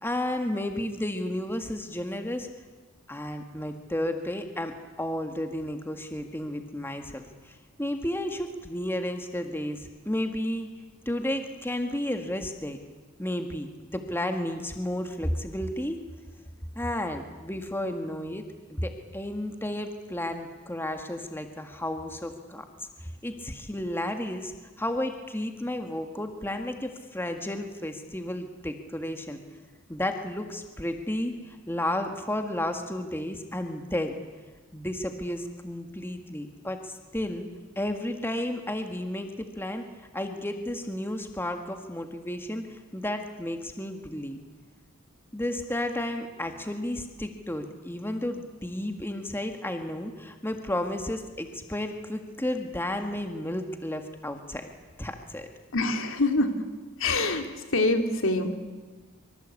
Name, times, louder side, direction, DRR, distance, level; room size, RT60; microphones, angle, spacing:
voice 1, 0.0-2.5 3.1-10.7 11.0-12.8 13.2-16.0 16.7-29.4 29.9-34.2 34.7-37.5 37.7-39.9 40.1-44.4 45.3-54.7 55.0-55.5, left 1 dB, 10° left, 6 dB, 1.7 m, -32 dB
voice 2, 55.7-56.7 57.0-57.5 57.7-58.6, left 2 dB, 70° left, 6 dB, 2.9 m, -25 dB
25.5 x 24.5 x 8.5 m, 1.3 s
head